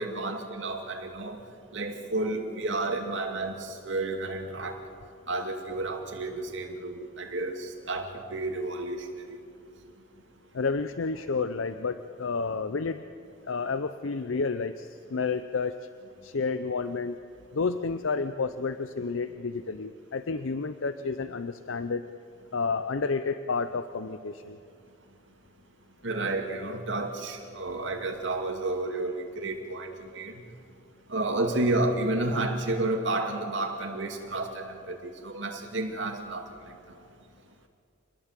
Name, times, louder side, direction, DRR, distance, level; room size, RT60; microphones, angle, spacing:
voice 1, 0.0-1.4 1.7-4.8 5.3-9.1 26.0-30.4 31.1-37.0, right 2 dB, 65° right, 3 dB, 2.5 m, -31 dB
voice 2, 10.5-13.0 13.5-15.8 16.2-17.2 17.5-22.1 22.5-24.6, left 4 dB, 75° left, 11 dB, 0.6 m, -30 dB
26.5 x 20.5 x 7.5 m, 2.5 s
head